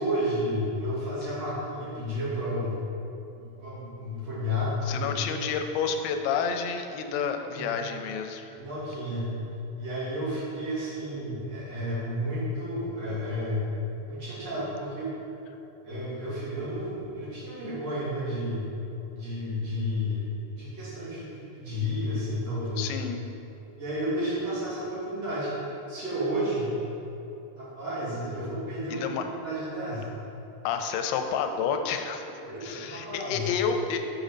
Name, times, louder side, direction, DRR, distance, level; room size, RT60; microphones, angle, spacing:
voice 1, 0.0-2.8 3.3-5.1 7.5-7.7 8.6-9.3 9.8-13.7 14.1-15.1 15.8-18.6 19.1-20.2 20.5-22.9 23.8-25.5 25.9-26.7 27.6-30.1 32.4-33.4, equal, 55° right, -9 dB, 2.6 m, -31 dB
voice 2, 4.9-8.5 22.8-23.2 28.9-29.2 30.6-32.2 32.6-34.0, left 6 dB, 85° left, 6 dB, 2.2 m, -29 dB
7.5 x 4.1 x 5.1 m, 2.8 s
omnidirectional pair, 4.0 m